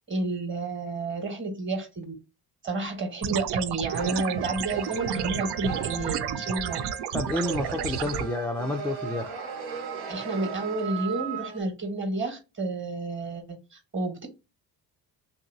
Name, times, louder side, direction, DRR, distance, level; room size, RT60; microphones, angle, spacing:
voice 1, 0.1-2.1 2.6-6.9 10.1-14.3, right 2 dB, 25° right, 1.2 m, -31 dB
sound 1, 3.2-8.2, right 9 dB, 55° right, 0.5 m, -31 dB
sound 2, 3.9-11.6, right 6 dB, 75° right, 1.1 m, -37 dB
voice 2, 7.1-9.3, left 2 dB, 5° left, 0.4 m, -30 dB
2.8 x 2.6 x 2.6 m
hypercardioid pair, 55°, 49 cm